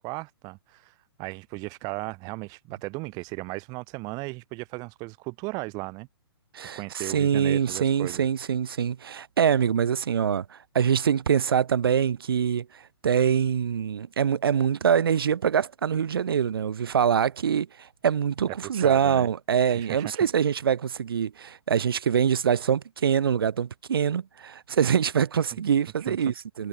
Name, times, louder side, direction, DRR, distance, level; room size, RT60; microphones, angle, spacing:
voice 1, 0.0-6.1 6.6-8.3 18.7-19.3 19.7-20.3 25.5-25.6 26.0-26.3, right 26 dB, 30° right, 5.1 m, -36 dB
voice 2, 6.5-26.7, right 8 dB, 60° right, 4.5 m, -24 dB
figure-of-eight pair, 125°, 14 cm